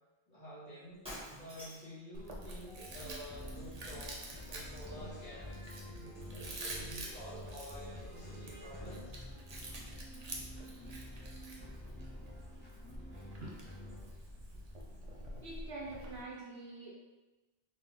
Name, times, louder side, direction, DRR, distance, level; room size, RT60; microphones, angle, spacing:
voice 1, 0.3-1.0 1.4-4.2 4.5-5.6 6.0-9.1 9.6-9.7, equal, 50° left, -10 dB, 1.9 m, -49 dB
Shatter, 1.0-2.0, equal, 5° right, 1.4 m, -47 dB
Chewing mastication, 2.1-16.2, right 1 dB, 40° right, 0.6 m, -48 dB
voice 2, 2.7-3.0 12.4-12.5 13.1-13.6 15.4-16.9, right 2 dB, 70° right, -4 dB, 0.9 m, -47 dB
sound 1, 2.9-14.0, equal, 10° left, 0.6 m, -49 dB
3.9 x 2.8 x 3.6 m, 1.1 s
omnidirectional pair, 1.1 m